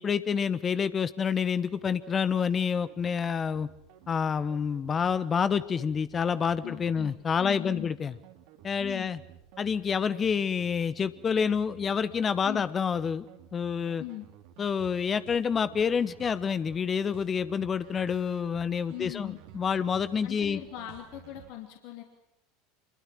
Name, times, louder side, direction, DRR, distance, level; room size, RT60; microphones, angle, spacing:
voice 1, 0.0-3.7 4.1-8.1 8.6-9.2 9.6-13.3 13.5-14.0 14.6-20.6, left 6 dB, 25° left, 15 dB, 1.0 m, -28 dB
sound 1, 1.7-21.5, right 10 dB, 55° right, 2.5 m, -53 dB
voice 2, 6.6-7.1 7.4-7.9 8.8-9.1 12.4-12.7 14.0-14.2 18.9-19.4 20.2-22.0, left 15 dB, 55° left, 3 dB, 2.8 m, -40 dB
26.0 x 22.5 x 7.5 m, 0.79 s
figure-of-eight pair, 75°, 0 cm